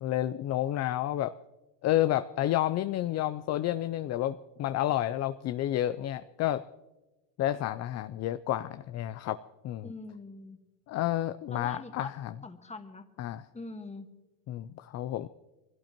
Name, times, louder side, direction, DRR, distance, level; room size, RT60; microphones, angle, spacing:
voice 1, 0.0-1.3 1.8-6.6 7.4-9.4 9.6-9.9 10.9-12.3 13.2-13.5 14.5-15.3, left 13 dB, 35° left, 12 dB, 0.4 m, -30 dB
voice 2, 9.8-10.6 11.5-12.1 12.4-13.1 13.5-14.1, left 3 dB, 15° left, 6 dB, 1.5 m, -42 dB
23.5 x 16.5 x 3.0 m, 1.1 s
supercardioid pair, 100°, 47 cm